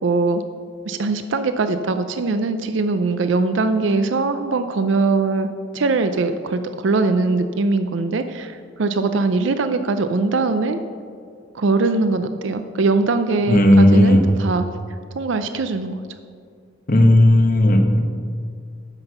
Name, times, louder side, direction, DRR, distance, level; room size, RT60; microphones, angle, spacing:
voice 1, 0.0-0.4 0.9-5.5 5.7-10.8 11.5-14.6 15.2-16.0, right 3 dB, 70° right, 9 dB, 0.5 m, -21 dB
voice 2, 13.5-14.2 16.9-18.0, left 1 dB, 45° left, 3 dB, 1.1 m, -13 dB
9.7 x 6.1 x 6.7 m, 2.1 s
head